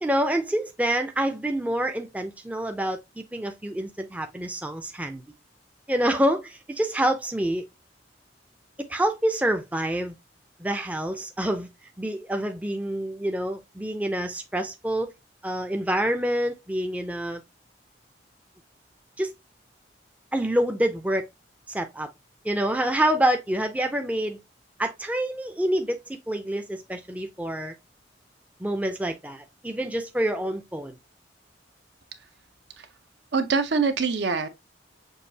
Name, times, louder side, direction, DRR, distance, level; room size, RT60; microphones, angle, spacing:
voice 1, 0.0-5.2 5.9-7.6 8.9-10.1 10.6-11.7 12.0-15.1 15.4-17.4 19.2-19.3 20.3-21.2 21.7-22.1 22.4-24.4 24.8-26.0 26.3-27.7 28.6-31.0, right 1 dB, 10° right, 0.4 m, -27 dB
voice 2, 33.3-34.5, right 4 dB, 70° right, 0.6 m, -24 dB
6.4 x 2.4 x 2.7 m
head